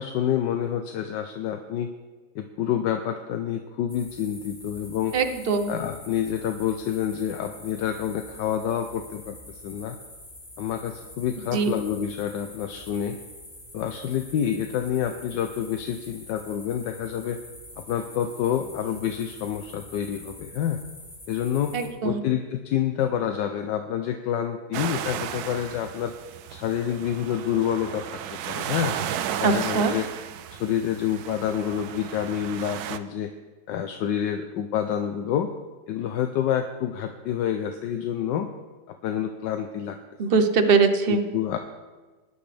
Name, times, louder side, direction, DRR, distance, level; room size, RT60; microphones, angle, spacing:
voice 1, 0.0-1.9 2.3-5.1 5.7-10.0 10.6-13.2 13.7-17.4 17.8-20.8 21.3-21.7 22.0-26.1 26.5-28.2 28.5-29.0 29.4-30.1 30.5-33.3 33.7-35.5 35.9-38.5 38.9-40.0 41.1-41.6, left 9 dB, 80° left, 6 dB, 1.4 m, -28 dB
sound 1, 3.9-21.9, left 1 dB, 35° left, 2.7 m, -45 dB
voice 2, 5.1-5.7 11.5-11.7 21.7-22.2 29.4-29.9 40.2-41.2, right 5 dB, 45° right, 7 dB, 0.8 m, -22 dB
sound 2, 24.7-33.0, right 10 dB, 70° right, 1.0 m, -34 dB
19.5 x 9.7 x 3.4 m, 1.3 s
omnidirectional pair, 1.9 m